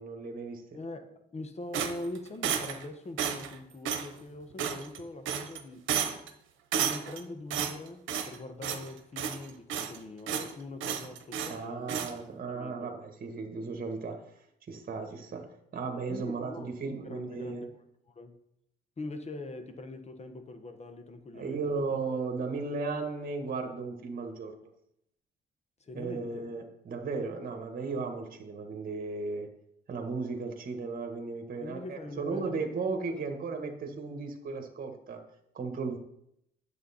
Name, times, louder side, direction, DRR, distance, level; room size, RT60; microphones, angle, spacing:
voice 1, 0.0-0.8 11.5-14.2 14.7-17.7 21.3-24.5 25.9-29.5 29.9-35.2 35.5-36.0, right 4 dB, 45° right, 4 dB, 1.6 m, -35 dB
voice 2, 0.7-5.9 6.8-12.0 12.5-12.9 16.1-16.7 17.0-17.7 18.1-18.4 19.0-21.8 25.8-26.4 31.6-32.5 33.1-33.2, left 2 dB, 35° left, 7 dB, 1.3 m, -42 dB
sound 1, 1.7-2.9 3.2-3.5 3.9-4.1 4.6-5.0 5.3-5.6 5.9-6.3 6.7-7.2 7.5-8.4 8.6-8.9 9.2-10.0 10.3-10.5 10.8-11.6 11.9-12.1, right 8 dB, 80° right, 1.0 m, -32 dB
9.2 x 7.3 x 4.3 m, 0.77 s
cardioid pair, 90°, 20 cm